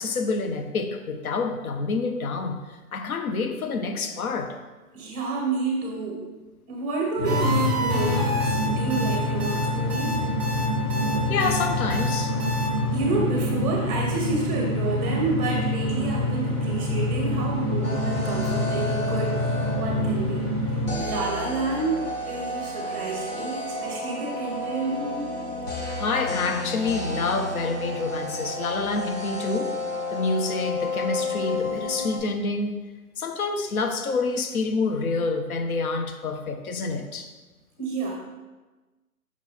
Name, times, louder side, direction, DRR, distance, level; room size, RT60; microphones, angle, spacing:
voice 1, 0.0-2.6 2.9-4.6 11.3-12.9 18.4-18.5 18.8-19.0 26.0-29.8 30.1-32.8 33.2-37.3, left 4 dB, 70° left, 7 dB, 0.8 m, -28 dB
voice 2, 4.9-6.2 6.7-7.4 7.8-10.2 12.9-19.5 19.8-20.4 21.0-25.3 25.8-26.0 37.8-38.2, right 3 dB, 15° right, -2 dB, 1.3 m, -30 dB
sound 1, 7.2-20.9, left 1 dB, 20° left, 2.1 m, -26 dB
sound 2, 7.2-12.7, left 1 dB, 5° left, 1.6 m, -27 dB
sound 3, 17.8-20.1 20.9-32.2, left 2 dB, 90° left, 2.1 m, -31 dB
6.0 x 4.2 x 4.1 m, 1.2 s
hypercardioid pair, 155°, 45 cm